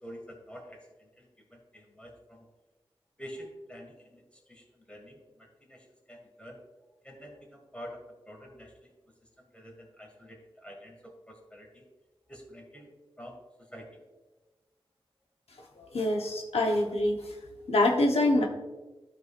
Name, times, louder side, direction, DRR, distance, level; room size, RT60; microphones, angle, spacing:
voice 1, 0.0-2.5 3.2-6.6 7.0-8.0 8.3-8.7 9.4-11.8 12.3-12.9 13.2-14.0, equal, 10° left, 1 dB, 2.0 m, -48 dB
voice 2, 15.8-17.3 17.7-18.5, left 1 dB, 85° left, 0 dB, 1.1 m, -25 dB
13.5 x 4.7 x 2.5 m, 1.1 s
wide cardioid pair, 90°, 10 cm